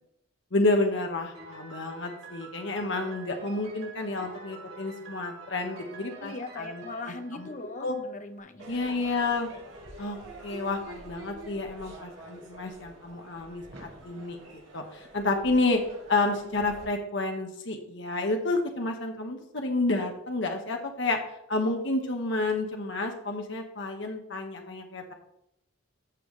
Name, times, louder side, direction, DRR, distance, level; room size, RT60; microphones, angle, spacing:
voice 1, 0.5-7.5 7.8-8.0 8.7-9.5 10.0-15.8 16.1-21.2 21.5-25.1, left 2 dB, 60° left, 3 dB, 1.2 m, -30 dB
Piano, 1.3-8.2, right 4 dB, 90° right, 3.7 m, -47 dB
voice 2, 6.2-9.1, left 2 dB, 35° left, 8 dB, 0.8 m, -40 dB
Crowd / Fireworks, 8.6-16.8, right 2 dB, 60° right, 3.6 m, -47 dB
14.5 x 5.5 x 3.2 m, 0.78 s
head